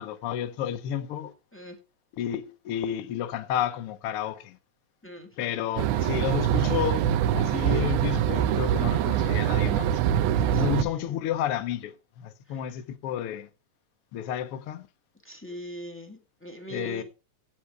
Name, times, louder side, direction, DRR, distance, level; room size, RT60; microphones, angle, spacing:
voice 1, 0.0-1.3 2.1-4.6 5.4-9.9 10.5-13.5 14.1-14.9 16.7-17.0, left 10 dB, 70° left, 1.4 m, -31 dB
sound 1, 5.8-10.8, right 10 dB, 80° right, 2.2 m, -24 dB
voice 2, 10.5-11.2 12.5-12.7 15.2-17.0, equal, 5° left, 1.1 m, -41 dB
16.0 x 5.4 x 4.7 m
omnidirectional pair, 3.4 m